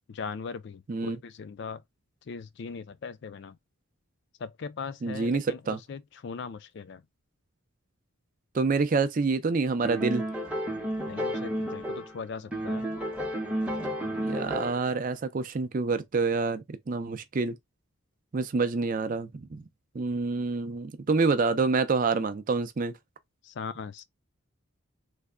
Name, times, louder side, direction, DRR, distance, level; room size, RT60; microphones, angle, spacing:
voice 1, 0.1-1.8 2.3-3.6 4.4-7.0 11.1-12.9 23.4-24.0, left 5 dB, 55° left, 0.3 m, -39 dB
voice 2, 0.9-1.2 5.0-5.8 8.5-10.2 14.1-17.6 18.3-19.6 19.9-22.9, right 4 dB, 40° right, 0.4 m, -27 dB
sound 1, 9.8-12.2 12.5-14.9, equal, 5° right, 0.7 m, -32 dB
3.3 x 2.1 x 3.6 m
head